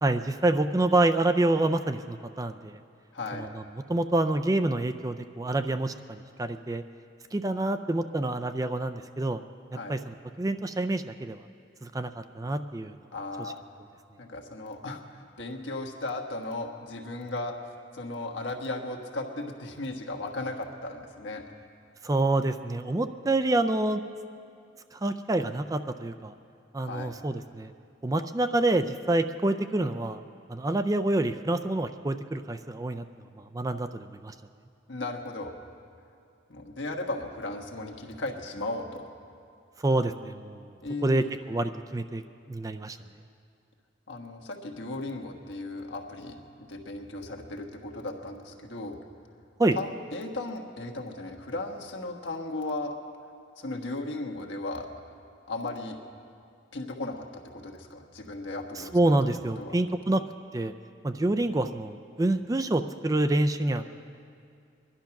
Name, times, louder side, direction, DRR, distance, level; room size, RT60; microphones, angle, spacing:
voice 1, 0.0-2.8 3.4-3.6 3.9-6.8 7.3-9.4 9.9-11.4 11.8-13.0 22.0-24.0 24.9-26.3 26.7-27.7 28.0-30.2 30.5-33.0 33.4-34.3 39.8-40.7 41.0-42.2 42.5-43.0 49.6-49.8 58.9-60.2 60.5-60.7 61.0-63.8, right 2 dB, 20° right, 9 dB, 0.4 m, -27 dB
voice 2, 3.1-3.5 9.7-9.9 13.1-13.6 14.2-17.6 17.9-21.4 26.8-27.1 34.9-35.6 36.5-39.1 40.8-41.4 44.1-49.0 49.7-53.0 53.6-54.9 55.5-56.0 56.7-58.9 59.6-59.7, left 2 dB, 75° left, 2 dB, 1.5 m, -36 dB
21.5 x 11.5 x 5.9 m, 2.4 s
head